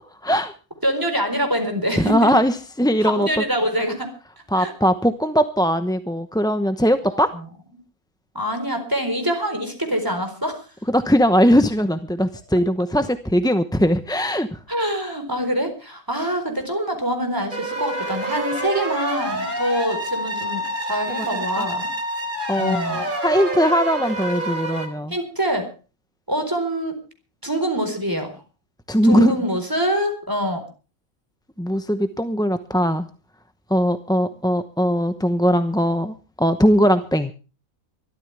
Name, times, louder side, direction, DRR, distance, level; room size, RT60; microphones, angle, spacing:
voice 1, 0.2-0.5 2.0-3.4 4.5-7.3 10.9-14.6 21.1-21.3 21.6-21.7 22.5-25.1 28.9-29.3 31.6-33.1 33.7-37.3, equal, 5° left, 9 dB, 0.7 m, -20 dB
voice 2, 0.8-2.3 3.0-4.1 4.6-4.7 7.1-7.2 8.3-10.6 14.7-21.9 22.6-23.0 25.1-25.7 26.3-27.0 27.4-28.4 29.0-30.6, equal, 15° right, 5 dB, 4.3 m, -25 dB
sound 1, 17.5-24.9, right 1 dB, 35° right, 3.6 m, -27 dB
24.0 x 14.0 x 3.4 m, 0.35 s
omnidirectional pair, 1.5 m